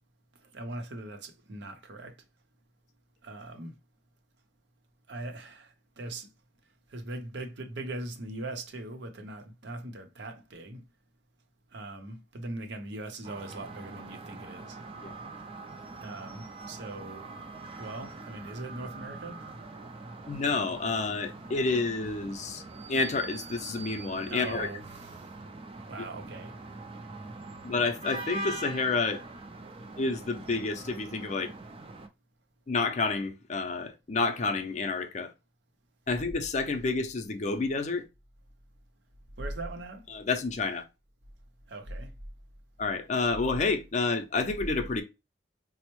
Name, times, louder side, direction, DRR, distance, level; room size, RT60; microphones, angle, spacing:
voice 1, 0.5-2.2 3.2-3.7 5.1-6.3 6.9-10.8 11.7-14.8 16.0-17.3 17.8-19.4 24.3-25.1 25.9-26.5 39.4-40.0 41.7-42.1, right 2 dB, 80° right, 0.7 m, -40 dB
sound 1, 13.2-32.1, right 2 dB, 30° right, 0.4 m, -43 dB
voice 2, 20.3-22.6 22.9-24.7 27.6-29.2 30.0-31.5 32.7-35.3 36.1-38.0 40.1-40.8 42.8-45.0, left 3 dB, 40° left, 0.5 m, -29 dB
4.2 x 2.0 x 3.0 m
head